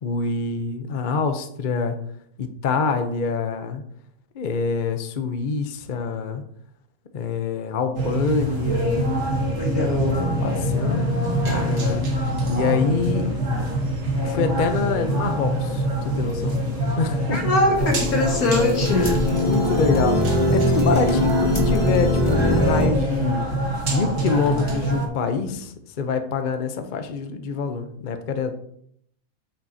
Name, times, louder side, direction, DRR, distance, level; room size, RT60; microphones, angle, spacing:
voice 1, 0.0-2.0 2.4-3.8 4.3-6.4 7.1-9.1 10.4-11.1 11.5-13.3 14.2-15.8 16.1-16.6 17.0-17.5 19.0-23.5 23.9-28.6, left 4 dB, 45° left, 8 dB, 0.7 m, -25 dB
sound 1, 7.9-25.1, right 1 dB, 55° right, 1.6 m, -24 dB
voice 2, 9.5-10.3 17.3-19.1, left 2 dB, 85° left, 0 dB, 2.2 m, -22 dB
sound 2, 17.7-22.9, left 1 dB, 20° left, 1.7 m, -22 dB
8.7 x 5.9 x 2.7 m, 0.68 s
omnidirectional pair, 1.5 m